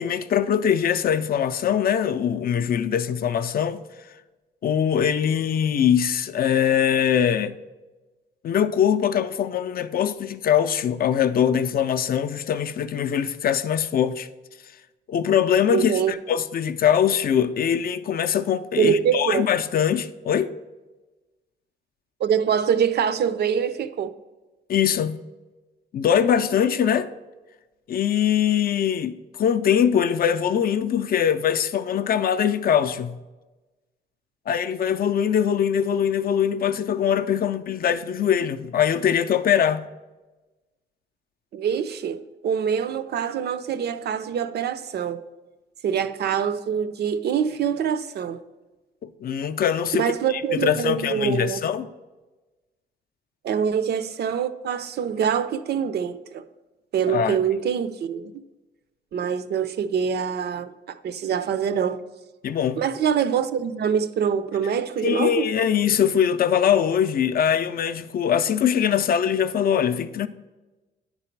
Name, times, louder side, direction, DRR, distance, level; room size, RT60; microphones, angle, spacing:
voice 1, 0.0-3.8 4.6-7.5 8.4-14.3 15.1-20.5 24.7-25.2 25.9-27.1 27.9-33.1 34.5-39.8 49.0-51.9 57.1-57.4 62.4-62.8 65.0-70.3, left 8 dB, 50° left, 0.4 m, -22 dB
voice 2, 15.7-16.1 18.8-19.4 22.2-24.1 41.5-45.2 45.8-48.4 49.9-51.6 53.4-56.4 56.9-58.3 59.1-60.7 61.0-62.0 62.8-65.5, right 8 dB, 55° right, 0.5 m, -24 dB
9.6 x 4.0 x 4.5 m
cardioid pair, 90°, 20 cm